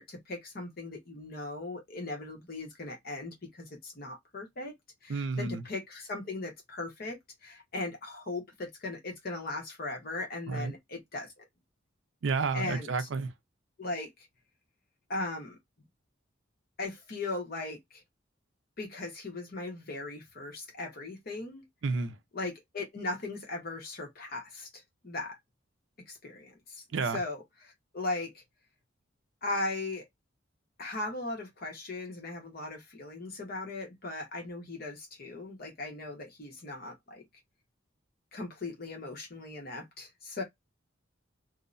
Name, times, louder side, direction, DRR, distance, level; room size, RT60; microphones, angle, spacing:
voice 1, 0.0-4.7 5.0-11.4 12.5-13.1 13.8-14.1 15.1-15.6 16.8-18.0 18.8-21.6 22.3-25.4 26.1-26.8 27.1-28.4 29.4-30.0 30.8-37.2 38.3-40.4, left 2 dB, 50° left, 1.0 m, -38 dB
voice 2, 5.1-5.6 10.5-10.7 12.2-13.3 21.8-22.2 26.9-27.2, right 4 dB, 70° right, 0.5 m, -31 dB
2.7 x 2.1 x 2.5 m
head